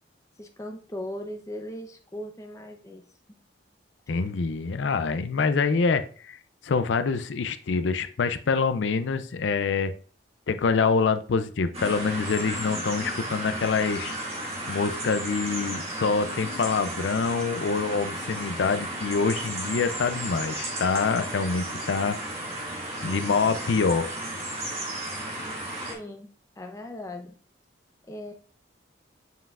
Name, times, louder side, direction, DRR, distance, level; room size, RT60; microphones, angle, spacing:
voice 1, 0.4-3.0 3.3-3.4 25.9-26.3 26.6-27.3 28.1-28.3, left 1 dB, 15° left, 4 dB, 0.7 m, -38 dB
voice 2, 4.1-6.4 6.6-9.9 10.5-14.1 14.7-22.2 23.0-24.1, left 4 dB, 75° left, 11 dB, 0.4 m, -25 dB
sound 1, 11.7-25.9, right 1 dB, 35° right, 2.3 m, -34 dB
7.3 x 5.6 x 2.4 m, 0.43 s
head